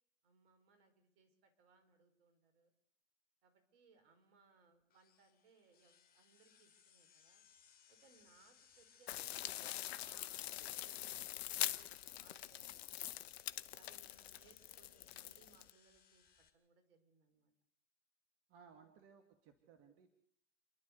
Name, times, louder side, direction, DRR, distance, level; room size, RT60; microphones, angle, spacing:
voice 1, 0.2-2.7 3.4-7.4 7.9-13.3 13.8-17.5 18.7-18.9, right 5 dB, 55° right, 7 dB, 5.4 m, -70 dB
sound 1, 4.9-16.5, left 7 dB, 25° left, 2.9 m, -68 dB
sound 2, 9.1-15.7, left 13 dB, 60° left, 1.0 m, -44 dB
voice 2, 18.5-20.1, right 6 dB, 35° right, 6 dB, 2.4 m, -62 dB
29.5 x 11.5 x 8.3 m, 0.72 s
hypercardioid pair, 110°, 36 cm